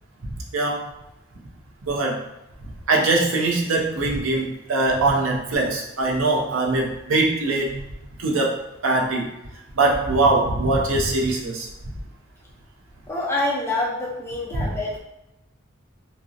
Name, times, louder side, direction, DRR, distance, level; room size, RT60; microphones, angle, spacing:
voice 1, 0.2-0.9 1.9-2.3 2.9-7.9 8.2-9.3 9.7-11.7 14.6-14.7, right 2 dB, 85° right, -1 dB, 0.5 m, -22 dB
voice 2, 13.1-15.0, left 2 dB, 10° left, -4 dB, 0.5 m, -26 dB
2.6 x 2.0 x 2.4 m, 0.91 s
head